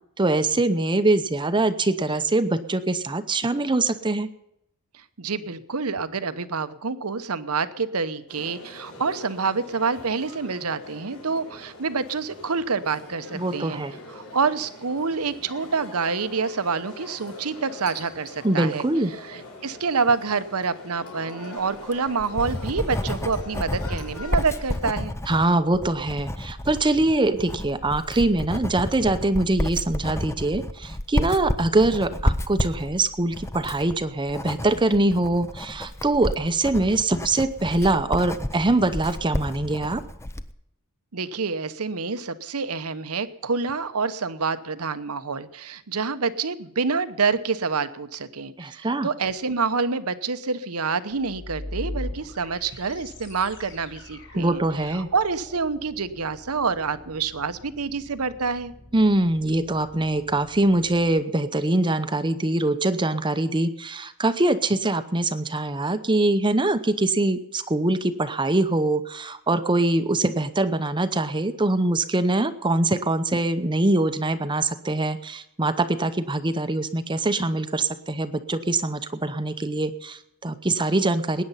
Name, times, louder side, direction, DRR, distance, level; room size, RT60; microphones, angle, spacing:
voice 1, 0.2-4.3 13.3-14.0 18.4-19.1 25.3-40.0 48.6-49.1 54.4-55.1 58.9-81.4, right 2 dB, 20° right, 11 dB, 0.8 m, -23 dB
voice 2, 4.9-13.8 14.1-18.8 19.2-25.2 41.1-54.6 54.9-58.7, right 4 dB, 75° right, 13 dB, 1.0 m, -27 dB
sound 1, 8.3-24.8, left 2 dB, 75° left, 4.9 m, -43 dB
Writing, 21.7-40.5, left 1 dB, 10° left, 0.6 m, -31 dB
sound 2, 51.1-61.1, left 1 dB, 55° left, 6.0 m, -41 dB
20.0 x 9.5 x 5.7 m, 0.81 s
head